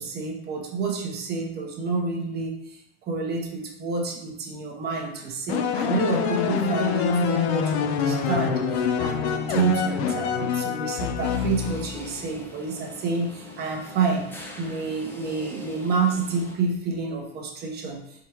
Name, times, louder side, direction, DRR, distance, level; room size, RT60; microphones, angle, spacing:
voice 1, 0.0-18.0, right 4 dB, 30° right, 0 dB, 1.0 m, -29 dB
sound 1, 5.5-12.1, left 6 dB, 80° left, 0.6 m, -25 dB
sound 2, 11.2-16.6, left 2 dB, 5° left, 0.5 m, -42 dB
4.4 x 3.7 x 2.9 m, 0.79 s
supercardioid pair, 135°, 32 cm